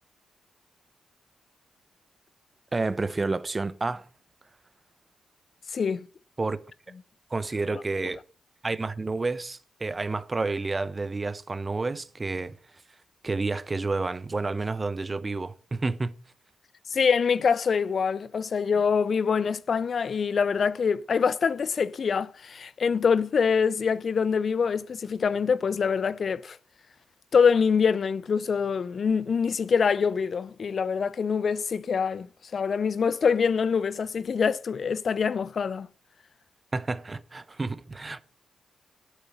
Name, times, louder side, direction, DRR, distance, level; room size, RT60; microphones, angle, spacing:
voice 1, 2.7-4.1 6.4-6.6 7.3-8.2 8.6-12.6 13.2-16.1 36.7-38.2, right 3 dB, 35° right, 1.0 m, -30 dB
voice 2, 5.7-6.1 7.7-7.8 16.9-26.6 27.3-32.3 32.5-35.9, left 6 dB, 55° left, 0.5 m, -25 dB
8.6 x 8.1 x 6.9 m
supercardioid pair, 45°, 0 cm